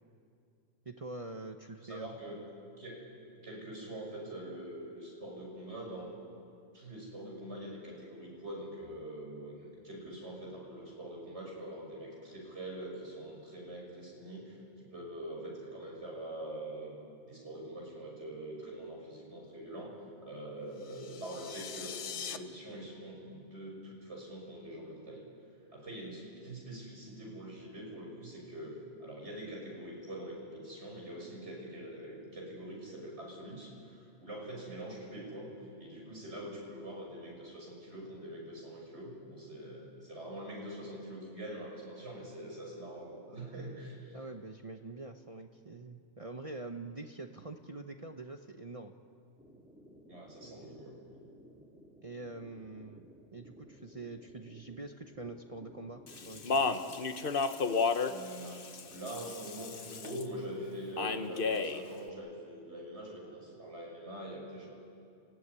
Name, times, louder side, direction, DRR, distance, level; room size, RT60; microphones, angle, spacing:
voice 1, 0.8-2.1 44.1-49.0 50.4-50.8 52.0-53.1 53.3-56.8, right 2 dB, 30° right, 5 dB, 0.9 m, -45 dB
voice 2, 1.8-2.4 2.8-3.0 3.4-6.1 6.7-16.9 17.2-19.9 20.2-25.3 25.7-44.2 50.1-51.0 58.1-64.7, right 1 dB, 70° right, -2 dB, 6.6 m, -44 dB
sound 1, 20.8-22.4, left 7 dB, 90° left, 1.3 m, -42 dB
sound 2, 49.4-56.8, equal, 5° right, 2.6 m, -57 dB
Speech, 56.1-60.2 61.0-61.8, left 4 dB, 50° left, 1.2 m, -32 dB
29.5 x 16.0 x 9.7 m, 2.4 s
omnidirectional pair, 1.2 m